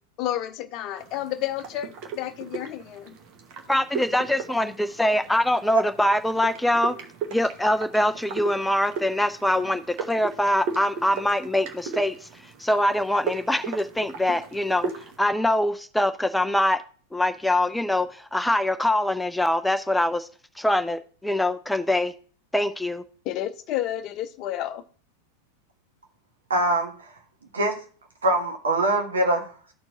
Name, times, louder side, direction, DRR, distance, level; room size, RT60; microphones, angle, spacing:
voice 1, 0.2-3.2 23.2-24.8, left 13 dB, 40° left, 0.6 m, -31 dB
sound 1, 1.0-15.2, right 5 dB, 40° right, 1.2 m, -37 dB
voice 2, 3.7-7.0 7.3-12.3 12.6-14.9 15.2-16.8 17.1-20.3 20.6-22.1 22.5-23.0, left 1 dB, 5° left, 0.4 m, -23 dB
voice 3, 26.5-27.1 27.5-27.8 28.2-29.5, right 2 dB, 70° right, 1.5 m, -23 dB
13.0 x 4.4 x 2.8 m
figure-of-eight pair, 90°, 0 cm